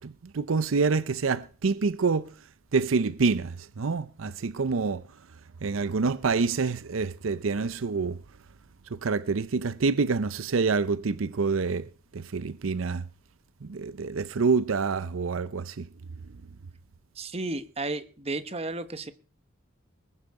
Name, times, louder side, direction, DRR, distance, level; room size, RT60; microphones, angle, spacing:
voice 1, 0.0-2.3 2.7-5.0 5.6-8.2 8.9-13.0 13.6-15.9, right 4 dB, 75° right, 0.6 m, -27 dB
voice 2, 17.2-19.1, right 2 dB, 30° right, 1.0 m, -33 dB
20.5 x 10.5 x 4.8 m
head